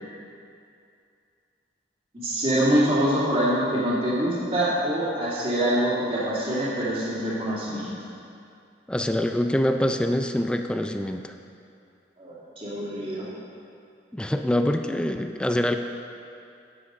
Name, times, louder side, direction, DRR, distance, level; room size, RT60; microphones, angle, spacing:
voice 1, 2.2-7.9 12.2-13.3, right 1 dB, 35° right, -8 dB, 2.4 m, -25 dB
voice 2, 8.9-11.3 14.1-15.8, left 1 dB, 5° left, 6 dB, 0.3 m, -25 dB
10.0 x 7.7 x 5.4 m, 2.5 s
head